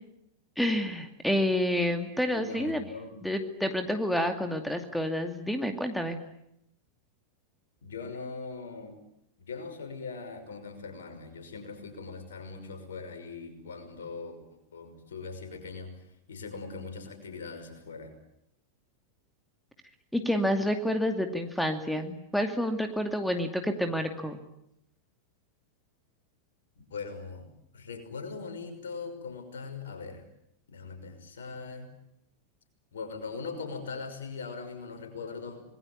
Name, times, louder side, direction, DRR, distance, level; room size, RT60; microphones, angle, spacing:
voice 1, 0.6-2.8 3.2-6.2 20.1-24.4, left 1 dB, ahead, 7 dB, 2.4 m, -29 dB
voice 2, 2.3-3.3 7.8-9.0 9.4-14.4 14.7-15.9 16.3-18.1 26.9-30.2 30.7-31.9 32.9-35.6, left 4 dB, 65° left, 7 dB, 5.9 m, -40 dB
26.5 x 21.0 x 10.0 m, 0.79 s
figure-of-eight pair, 90°, 0 cm